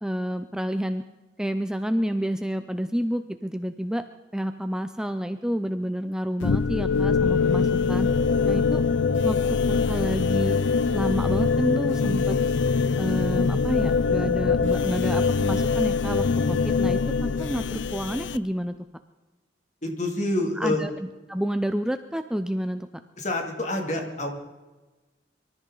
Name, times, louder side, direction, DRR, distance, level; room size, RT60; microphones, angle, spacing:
voice 1, 0.0-1.0 1.4-4.0 4.3-8.1 8.4-8.8 9.2-9.4 9.7-10.6 10.9-12.4 13.0-18.8 20.6-20.9 21.3-22.9, equal, 5° right, 9 dB, 0.5 m, -29 dB
sound 1, 6.4-18.4, left 5 dB, 85° left, 0.5 m, -23 dB
voice 2, 19.8-20.8 23.2-24.3, left 1 dB, 40° left, 2 dB, 2.6 m, -27 dB
24.5 x 13.5 x 3.9 m, 1.2 s
head